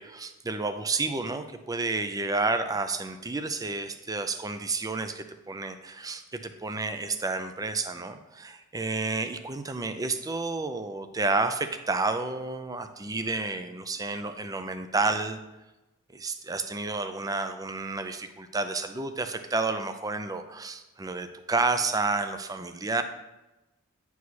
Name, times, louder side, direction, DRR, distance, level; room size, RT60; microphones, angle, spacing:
voice 1, 0.0-15.4 16.1-23.0, right 3 dB, 15° right, 9 dB, 0.5 m, -30 dB
9.4 x 4.8 x 4.2 m, 1.0 s
head